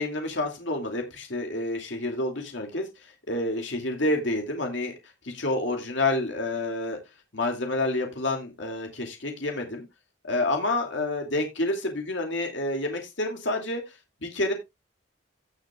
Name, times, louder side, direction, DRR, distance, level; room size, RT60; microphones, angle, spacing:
voice 1, 0.0-2.8 3.3-4.9 5.2-7.0 7.3-9.8 10.2-13.8 14.2-14.5, left 2 dB, 70° left, 2 dB, 2.4 m, -28 dB
16.5 x 6.7 x 2.3 m, 0.23 s
head